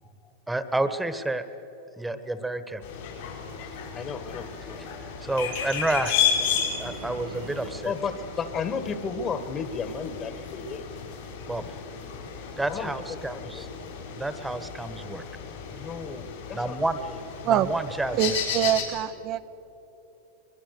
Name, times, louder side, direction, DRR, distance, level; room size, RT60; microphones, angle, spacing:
voice 1, 0.5-1.4 2.0-2.8 5.2-6.2 6.8-7.9 11.5-11.6 12.6-13.7 14.2-15.2 16.5-17.0 17.4-18.4, right 2 dB, 5° right, 11 dB, 1.2 m, -29 dB
sound 1, 2.8-18.8, left 7 dB, 75° left, 5.6 m, -33 dB
voice 2, 3.5-5.3 7.5-10.9 12.7-13.7 15.7-17.2, left 5 dB, 30° left, 11 dB, 1.7 m, -35 dB
sound 2, 5.9-8.0, right 6 dB, 65° right, 1.6 m, -43 dB
voice 3, 18.1-19.4, right 11 dB, 45° right, 10 dB, 0.6 m, -24 dB
22.5 x 21.5 x 6.7 m, 3.0 s
hypercardioid pair, 115°, 0 cm